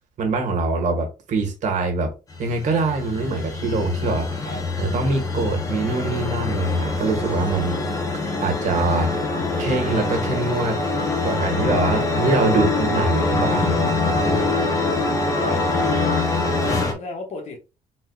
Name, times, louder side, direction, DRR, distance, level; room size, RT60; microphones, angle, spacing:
voice 1, 0.2-2.1 2.4-4.5 4.8-7.8 8.4-9.2 9.6-10.8 11.2-13.9, right 3 dB, 65° right, 1.4 m, -24 dB
sound 1, 2.3-16.9, left 3 dB, 25° left, 0.8 m, -24 dB
voice 2, 16.4-17.6, left 3 dB, 55° left, 1.4 m, -34 dB
4.1 x 4.0 x 2.3 m
cardioid pair, 155°, 14 cm